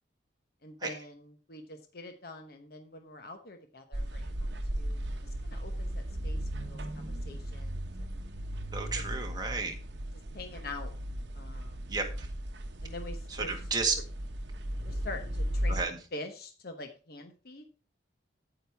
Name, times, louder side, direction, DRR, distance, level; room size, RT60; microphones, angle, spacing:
voice 1, 0.6-4.5 4.7-5.0 5.4-8.1 8.9-9.0 10.3-10.9 11.3-11.9 12.8-13.5 14.9-17.7, left 2 dB, 55° left, 6 dB, 1.0 m, -45 dB
sound 1, 3.9-15.8, equal, 65° right, 1.1 m, -36 dB
voice 2, 8.7-9.7 11.9-12.0 13.4-13.9 15.7-16.0, right 4 dB, 20° right, 2 dB, 1.6 m, -32 dB
8.9 x 8.8 x 3.5 m, 0.35 s
head